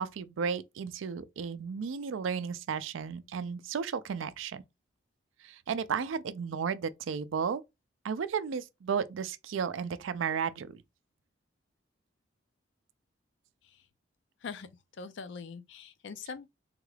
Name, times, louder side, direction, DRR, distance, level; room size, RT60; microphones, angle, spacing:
voice 1, 0.0-4.6 5.4-7.6 8.0-10.8, right 6 dB, 80° right, 0.4 m, -33 dB
voice 2, 15.0-16.5, left 5 dB, 65° left, 0.4 m, -42 dB
3.6 x 2.3 x 3.2 m
head